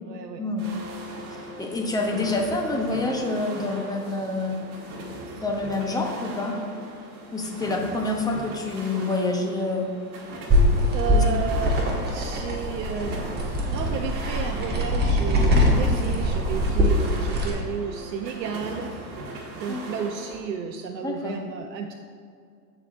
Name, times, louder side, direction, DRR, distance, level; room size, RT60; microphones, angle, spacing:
voice 1, 0.1-0.4 1.0-1.1 10.9-11.8 12.1-18.9 19.5-21.9, right 6 dB, 80° right, 4 dB, 0.7 m, -32 dB
sound 1, 0.6-20.4, right 2 dB, 45° right, 1.8 m, -39 dB
voice 2, 1.6-4.7 5.4-6.6 7.3-9.9 11.1-11.2 19.7-19.8 21.0-21.3, left 2 dB, 10° left, 1 dB, 0.7 m, -27 dB
sound 2, 10.5-17.5, equal, 20° right, 1.4 m, -23 dB
14.0 x 4.9 x 2.5 m, 2.3 s
hypercardioid pair, 110°, 49 cm